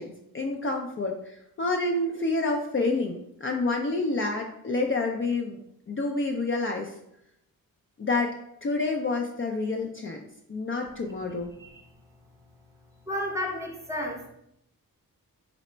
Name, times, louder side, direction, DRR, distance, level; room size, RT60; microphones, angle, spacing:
voice 1, 0.0-5.6 5.9-6.9 8.0-11.5, left 3 dB, 35° left, 1 dB, 0.4 m, -28 dB
voice 2, 13.1-14.3, left 1 dB, 10° right, 1 dB, 0.7 m, -32 dB
3.9 x 2.1 x 4.3 m, 0.77 s
cardioid pair, 80°, 36 cm